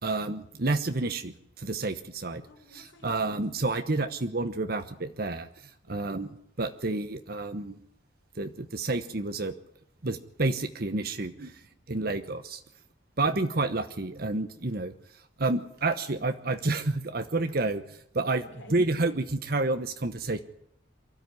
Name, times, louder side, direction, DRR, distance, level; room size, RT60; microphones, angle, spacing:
voice 1, 0.0-2.4 2.7-7.8 8.3-9.5 10.0-11.5 11.9-12.6 13.2-18.4 18.7-20.4, right 2 dB, 55° right, 9 dB, 1.1 m, -30 dB
voice 2, 2.5-3.3 5.9-6.0 11.1-11.9 18.4-18.8, left 1 dB, 80° left, 6 dB, 4.3 m, -54 dB
24.0 x 13.5 x 9.6 m, 0.73 s
head